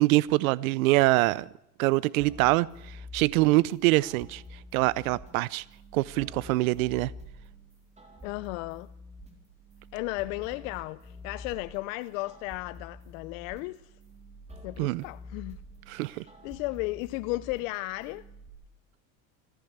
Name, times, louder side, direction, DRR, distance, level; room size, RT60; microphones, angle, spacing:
voice 1, 0.0-1.5 1.8-4.4 4.7-5.6 5.9-7.1 14.8-15.0 15.9-16.2, right 19 dB, 80° right, 0.7 m, -24 dB
sound 1, 2.2-18.5, left 1 dB, 15° right, 4.3 m, -48 dB
voice 2, 8.2-8.9 9.9-13.9 14.6-15.6 15.9-18.3, left 20 dB, 65° left, 0.7 m, -35 dB
26.0 x 14.5 x 8.1 m
supercardioid pair, 130°, 41 cm